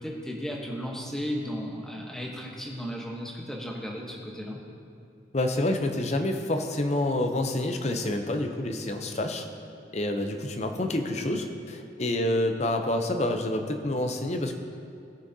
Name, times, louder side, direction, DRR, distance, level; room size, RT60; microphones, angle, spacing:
voice 1, 0.0-4.6, equal, 5° left, -2 dB, 1.1 m, -35 dB
voice 2, 5.3-9.5 9.9-14.6, left 1 dB, 40° left, 5 dB, 0.6 m, -28 dB
18.5 x 6.3 x 2.8 m, 2.5 s
head